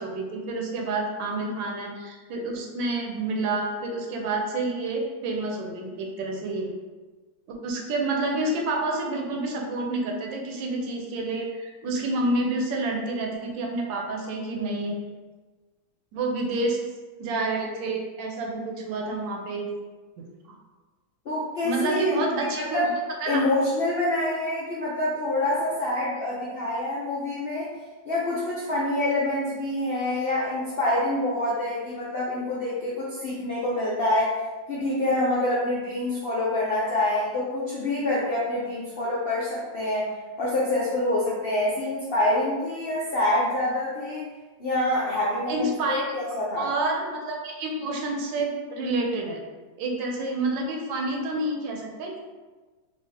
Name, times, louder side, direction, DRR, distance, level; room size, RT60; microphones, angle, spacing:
voice 1, 0.0-6.7 7.5-15.0 16.1-16.8 17.2-19.7 20.2-20.6 21.6-22.8 23.2-23.4 45.5-46.0 46.6-49.4 49.8-52.2, right 2 dB, 85° right, 1 dB, 1.4 m, -29 dB
voice 2, 21.3-22.5 22.7-22.9 23.3-27.7 28.1-34.4 34.7-40.1 40.4-44.2 44.6-46.7, left 1 dB, 80° left, -6 dB, 0.5 m, -26 dB
4.4 x 2.7 x 2.7 m, 1.3 s
omnidirectional pair, 2.0 m